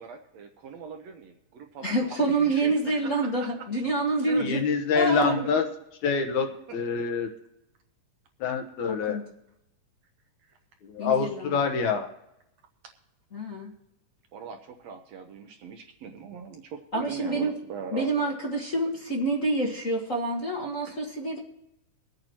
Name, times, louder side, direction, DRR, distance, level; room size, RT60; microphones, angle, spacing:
voice 1, 0.0-3.7 4.2-4.5 5.4-5.5 6.7-7.0 10.5-10.6 12.8-12.9 14.3-18.1 20.8-21.0, right 6 dB, 70° right, 4 dB, 1.8 m, -41 dB
voice 2, 1.8-4.6 4.9-5.4 8.9-9.2 11.0-11.6 13.3-13.7 16.9-17.5 17.9-21.4, right 2 dB, 40° left, -2 dB, 1.2 m, -27 dB
voice 3, 4.4-5.6 6.0-6.5 6.7-7.3 8.4-9.2 10.9-12.1, left 5 dB, 70° left, 5 dB, 2.3 m, -25 dB
24.5 x 8.9 x 3.0 m, 0.84 s
omnidirectional pair, 3.7 m